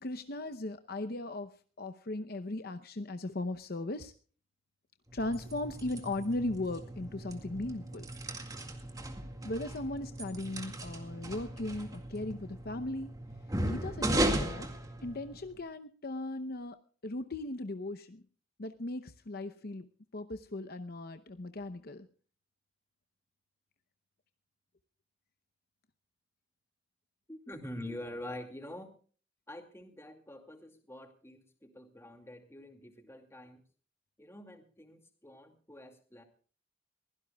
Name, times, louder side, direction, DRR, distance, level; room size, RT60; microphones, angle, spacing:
voice 1, 0.0-4.1 5.1-8.0 9.4-13.2 13.6-14.7 15.0-18.2 18.6-19.9 20.1-22.1, left 2 dB, 55° left, 9 dB, 0.8 m, -38 dB
sound 1, 5.1-15.6, right 1 dB, 20° right, 2.0 m, -37 dB
voice 2, 27.3-28.9 29.5-33.6 34.2-36.2, left 1 dB, 15° left, 5 dB, 2.3 m, -46 dB
23.0 x 16.5 x 2.3 m, 0.41 s
head